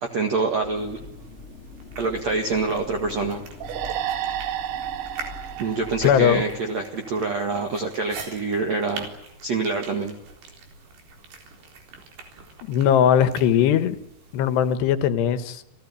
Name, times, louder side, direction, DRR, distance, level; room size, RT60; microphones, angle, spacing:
voice 1, 0.0-1.0 2.0-3.4 5.6-9.1 9.4-10.2, right 3 dB, 50° right, 3 dB, 2.5 m, -26 dB
sound 1, 0.6-6.6, left 3 dB, 20° left, 2.4 m, -43 dB
sound 2, 0.8-14.8, right 4 dB, 70° right, 6.0 m, -44 dB
sound 3, 3.6-7.1, right 11 dB, 85° right, 3.6 m, -32 dB
voice 2, 6.0-6.4 12.7-14.0 14.3-15.6, left 9 dB, 80° left, 12 dB, 3.3 m, -19 dB
30.0 x 16.5 x 9.6 m, 0.95 s
omnidirectional pair, 5.0 m